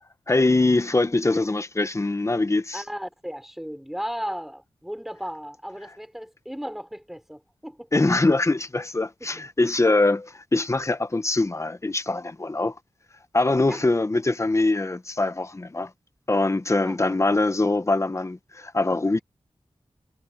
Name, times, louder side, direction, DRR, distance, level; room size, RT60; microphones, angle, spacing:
voice 1, 0.3-2.8 7.9-12.8 13.3-15.9 16.3-19.2, left 2 dB, 30° left, 1.0 m, -23 dB
voice 2, 2.7-7.9 13.7-13.8 16.8-17.2, equal, 5° right, 5.5 m, -35 dB
wide cardioid pair, 105°, 10 cm